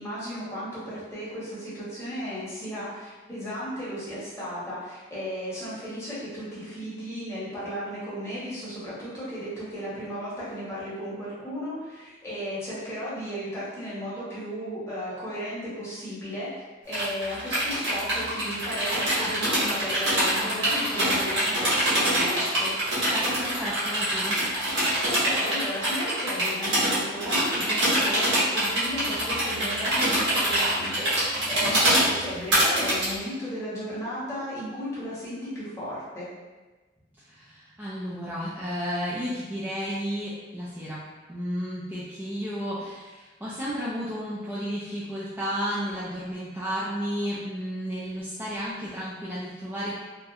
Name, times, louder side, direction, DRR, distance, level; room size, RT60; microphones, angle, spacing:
voice 1, 0.0-16.5 16.8-22.7 25.0-36.3, equal, 15° left, -10 dB, 0.9 m, -35 dB
sound 1, 16.9-33.1, right 1 dB, 75° right, 1.0 m, -24 dB
voice 2, 23.1-24.4 37.2-41.0 41.3-50.0, equal, 10° right, -10 dB, 0.3 m, -32 dB
2.3 x 2.1 x 2.7 m, 1.2 s
head